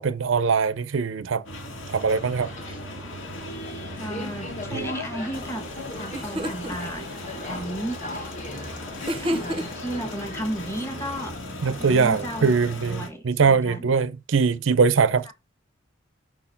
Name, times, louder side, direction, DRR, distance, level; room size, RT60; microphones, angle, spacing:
voice 1, 0.0-1.4 1.9-2.5 4.7-4.9 11.6-15.3, right 5 dB, 65° right, 0.5 m, -22 dB
sound 1, 1.5-13.1, left 1 dB, 70° left, 2.0 m, -37 dB
Subway metro underground, 2.4-11.3, left 2 dB, 35° left, 1.3 m, -39 dB
voice 2, 4.0-5.7 5.9-8.4 9.2-13.9 15.2-15.3, right 1 dB, 10° left, 1.3 m, -34 dB
sound 2, 5.8-5.9 6.1-6.8 9.1-9.9, right 1 dB, 25° right, 0.7 m, -29 dB
6.0 x 4.3 x 5.7 m
head